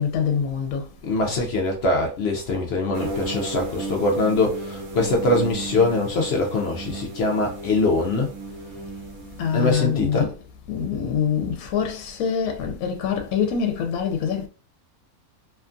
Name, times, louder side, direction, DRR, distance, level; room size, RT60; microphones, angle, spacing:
voice 1, 0.0-0.9 9.4-10.4 10.7-14.5, left 7 dB, 80° left, 1.0 m, -25 dB
voice 2, 1.0-8.3 9.5-10.3, left 2 dB, 65° left, 0.6 m, -23 dB
sound 1, 2.9-9.8, right 2 dB, 70° right, 1.1 m, -34 dB
2.8 x 2.3 x 2.5 m
omnidirectional pair, 1.5 m